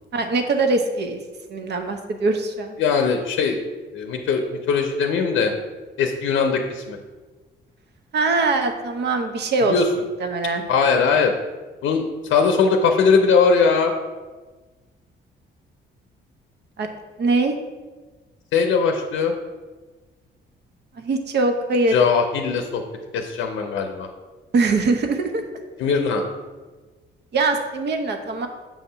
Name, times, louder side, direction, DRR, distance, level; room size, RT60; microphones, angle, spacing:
voice 1, 0.1-1.2 1.5-2.8 8.1-9.7 10.2-10.6 16.8-16.9 17.2-17.6 21.0-22.0 24.5-25.4 27.3-28.5, right 3 dB, 60° right, 6 dB, 0.8 m, -22 dB
voice 2, 2.8-3.6 3.9-5.5 6.0-7.0 9.7-9.9 10.7-11.3 11.8-12.0 12.3-13.9 18.5-19.3 21.9-22.8 23.1-24.1 25.8-26.2, left 5 dB, 80° left, 4 dB, 0.6 m, -20 dB
7.2 x 2.8 x 5.5 m, 1.3 s
cardioid pair, 90°, 20 cm